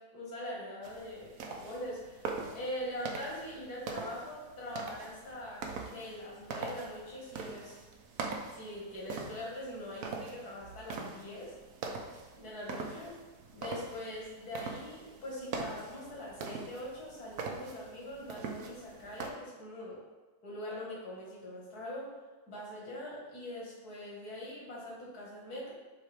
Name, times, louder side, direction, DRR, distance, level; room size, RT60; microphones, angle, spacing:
voice 1, 0.0-7.8 8.5-11.5 12.1-13.1 13.5-20.0 20.4-22.2 22.5-25.7, left 1 dB, 85° left, -5 dB, 2.2 m, -43 dB
sound 1, 0.8-19.3, right 4 dB, 75° right, 1.2 m, -43 dB
7.5 x 3.8 x 3.4 m, 1.3 s
omnidirectional pair, 1.6 m